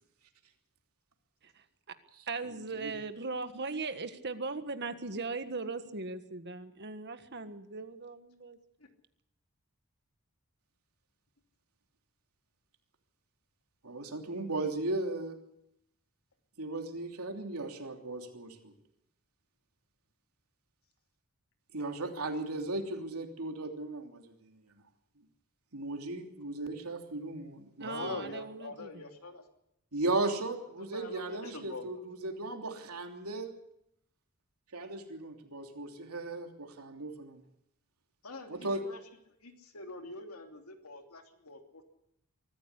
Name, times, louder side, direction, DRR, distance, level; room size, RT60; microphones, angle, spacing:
voice 1, 2.3-8.6 27.8-29.0, right 3 dB, 50° right, 9 dB, 1.6 m, -39 dB
voice 2, 13.8-15.3 16.6-18.7 21.7-24.6 25.7-28.2 29.9-33.5 34.7-37.4 38.5-38.8, right 2 dB, 85° right, 3 dB, 3.1 m, -36 dB
voice 3, 27.8-29.4 30.8-32.3 38.2-39.0 39.4-41.8, left 2 dB, 80° left, 4 dB, 3.0 m, -44 dB
23.5 x 14.5 x 8.3 m, 0.78 s
head